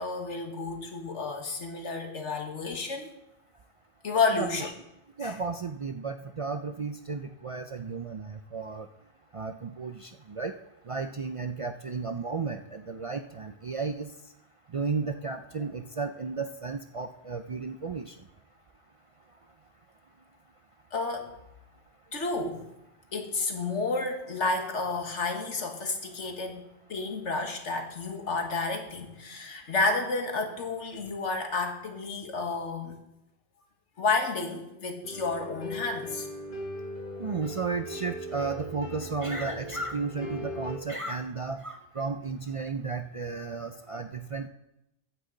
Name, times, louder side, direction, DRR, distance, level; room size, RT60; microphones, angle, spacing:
voice 1, 0.0-3.1 4.0-4.7 5.2-5.4 20.9-21.3 22.1-22.6 23.1-26.6 26.9-33.0 34.0-36.3, left 3 dB, 90° left, 4 dB, 1.9 m, -31 dB
voice 2, 4.3-4.7 5.2-8.9 9.3-10.5 10.9-14.1 14.7-18.2 37.2-44.5, right 4 dB, 50° right, 7 dB, 0.4 m, -33 dB
sound 1, 35.0-40.8, equal, 45° left, 1.9 m, -39 dB
15.5 x 9.1 x 3.9 m, 0.87 s
omnidirectional pair, 1.2 m